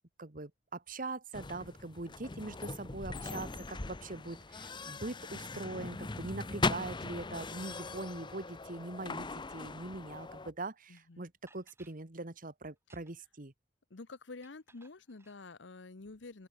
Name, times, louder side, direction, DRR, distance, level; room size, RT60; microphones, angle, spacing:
voice 1, 0.2-13.5, right 2 dB, 50° right, 1.7 m, -42 dB
sound 1, 1.3-10.5, left 3 dB, 25° left, 0.8 m, -40 dB
voice 2, 10.9-11.2 13.9-16.5, left 3 dB, 75° left, 1.0 m, -48 dB
sound 2, 11.0-11.1 11.5-12.0 12.8-13.3 14.4-15.4, right 3 dB, 15° right, 3.2 m, -64 dB
open air
head